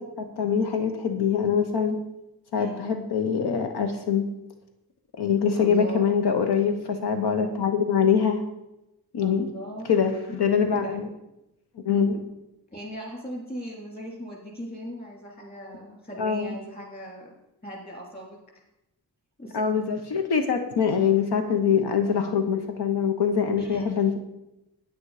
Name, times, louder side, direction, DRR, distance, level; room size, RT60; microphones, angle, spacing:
voice 1, 0.0-2.0 2.5-4.2 5.2-8.4 9.1-9.5 9.9-11.1 11.8-12.2 16.2-16.5 19.5-24.2, left 6 dB, 80° left, 6 dB, 1.0 m, -24 dB
voice 2, 5.6-6.0 9.2-9.9 10.7-11.0 12.1-12.2 12.7-17.3 17.6-18.4 19.4-19.6 23.6-23.9, equal, 25° left, 0 dB, 3.2 m, -38 dB
9.5 x 9.3 x 4.9 m, 0.90 s
wide cardioid pair, 155°, 39 cm